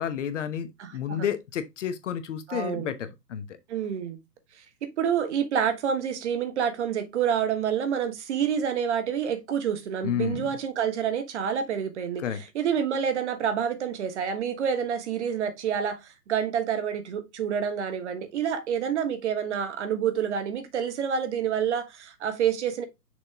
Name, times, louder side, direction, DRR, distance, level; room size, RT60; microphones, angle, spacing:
voice 1, 0.0-3.6 10.0-10.5 12.2-12.4, left 8 dB, 45° left, 1.1 m, -31 dB
voice 2, 0.8-1.2 2.5-2.9 3.7-4.2 4.8-12.2 12.5-22.8, right 8 dB, 45° right, 1.4 m, -28 dB
6.4 x 4.3 x 3.5 m
figure-of-eight pair, 135°, 49 cm